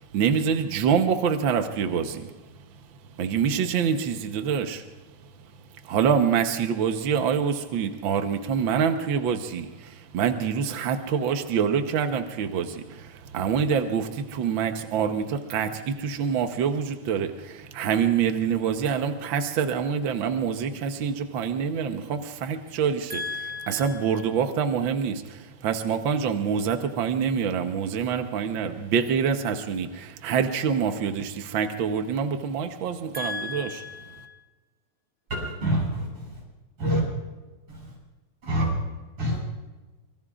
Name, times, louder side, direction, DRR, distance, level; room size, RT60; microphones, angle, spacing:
voice 1, 0.0-2.3 3.2-4.8 5.8-23.2 23.7-33.8, right 7 dB, 70° right, 6 dB, 1.2 m, -26 dB
voice 2, 23.1-24.2 33.1-34.4, left 3 dB, 40° left, 3 dB, 0.7 m, -35 dB
voice 3, 35.3-36.4 36.8-37.0 37.7-37.9 38.4-38.7 39.2-39.4, right 1 dB, 50° right, -2 dB, 8.4 m, -26 dB
25.5 x 23.0 x 2.5 m, 1.2 s
omnidirectional pair, 3.5 m